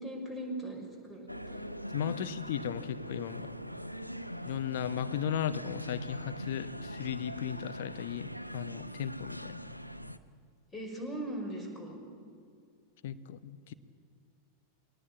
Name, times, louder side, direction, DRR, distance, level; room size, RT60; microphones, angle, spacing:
voice 1, 0.0-1.7 10.7-12.0, right 1 dB, 15° left, 2 dB, 5.7 m, -39 dB
sound 1, 1.3-10.2, equal, 90° right, 0.8 m, -41 dB
voice 2, 1.9-3.5 4.4-9.6 13.0-13.7, left 9 dB, 55° left, 13 dB, 1.0 m, -36 dB
21.5 x 18.5 x 8.7 m, 2.2 s
figure-of-eight pair, 90°, 0 cm